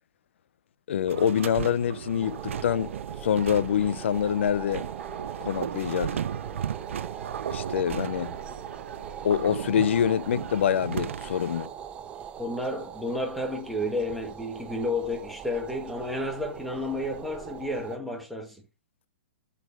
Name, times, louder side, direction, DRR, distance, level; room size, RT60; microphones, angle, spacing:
voice 1, 0.9-4.8 5.4-6.2 7.5-8.4 9.2-11.7, left 9 dB, 70° left, 0.7 m, -26 dB
sound 1, 1.1-11.7, right 8 dB, 85° right, 0.4 m, -36 dB
sound 2, 2.2-18.0, right 8 dB, 15° right, 0.6 m, -41 dB
voice 2, 12.4-18.6, left 1 dB, ahead, 1.7 m, -31 dB
7.1 x 6.5 x 5.0 m
hypercardioid pair, 150°, 7 cm